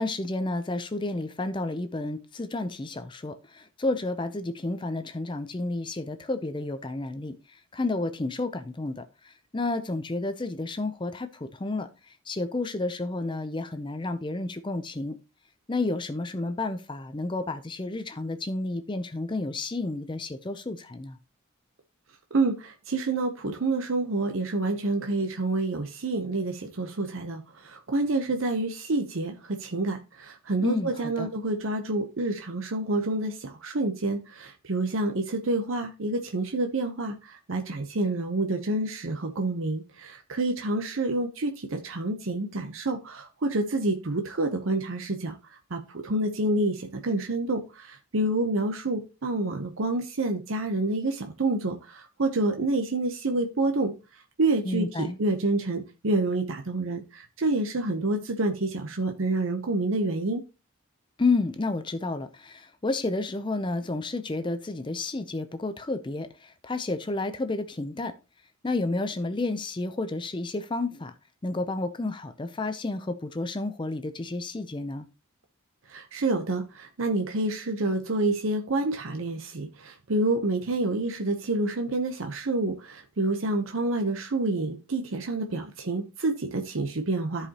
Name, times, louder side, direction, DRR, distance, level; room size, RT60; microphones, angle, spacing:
voice 1, 0.0-15.2 15.7-21.2 30.6-31.3 54.6-55.2 61.2-68.1 68.6-71.1 71.4-75.1, left 2 dB, 20° left, 0.5 m, -31 dB
voice 2, 22.3-45.3 45.7-53.9 54.4-60.4 75.9-87.5, right 2 dB, 65° right, 0.8 m, -28 dB
14.0 x 4.9 x 2.8 m
head